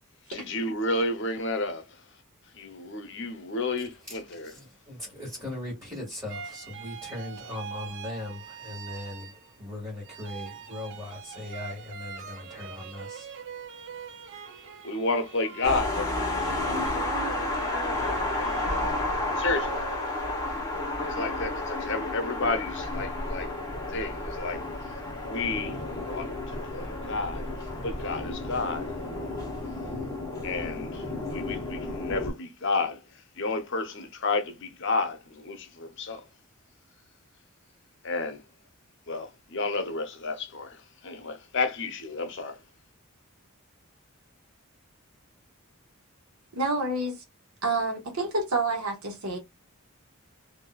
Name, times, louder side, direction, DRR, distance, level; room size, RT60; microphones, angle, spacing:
voice 1, 0.3-1.9 2.6-4.5 14.8-16.2 19.4-19.8 21.0-23.5 23.9-24.6 25.2-25.8 26.0-27.5 27.8-28.9 30.4-33.0 33.4-36.2 38.0-38.4 39.1-42.6, left 3 dB, 60° left, 0.8 m, -31 dB
voice 2, 4.0-13.4 13.7-14.4, left 2 dB, 15° right, 1.8 m, -39 dB
sound 1, 6.3-9.7 10.0-20.7, right 6 dB, 55° right, 0.6 m, -42 dB
sound 2, 15.6-32.3, left 2 dB, 15° left, 1.2 m, -31 dB
voice 3, 46.5-47.2 47.6-49.4, right 2 dB, 90° right, 1.3 m, -28 dB
3.7 x 2.6 x 2.3 m
head